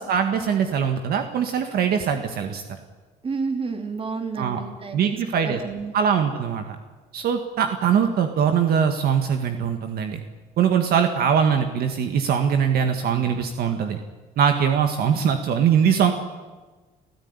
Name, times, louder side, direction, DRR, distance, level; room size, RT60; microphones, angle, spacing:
voice 1, 0.0-2.8 4.4-4.6 4.9-5.6 5.9-6.8 7.1-10.2 10.6-14.0 14.4-16.1, right 7 dB, 65° right, 6 dB, 2.0 m, -22 dB
voice 2, 3.2-5.9, right 4 dB, 35° right, 5 dB, 3.8 m, -30 dB
29.0 x 15.5 x 9.9 m, 1.3 s
cardioid pair, 110°, 17 cm